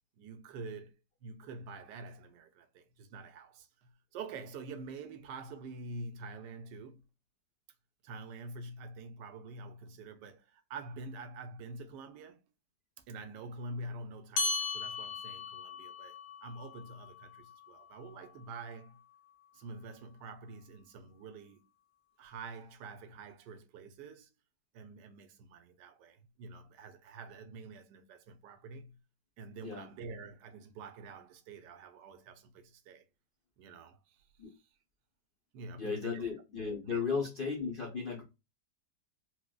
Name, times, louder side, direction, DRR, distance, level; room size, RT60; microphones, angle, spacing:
voice 1, 0.2-7.0 8.0-12.5 13.1-19.0 19.5-21.6 22.2-24.3 24.7-29.0 29.4-33.0 33.6-34.2 35.5-36.3 36.9-37.0, right 3 dB, 85° right, 1.2 m, -47 dB
sound 1, 14.4-19.2, left 4 dB, 80° left, 1.2 m, -39 dB
voice 2, 35.7-38.2, left 5 dB, 55° left, 0.6 m, -35 dB
4.5 x 2.2 x 2.2 m
omnidirectional pair, 1.8 m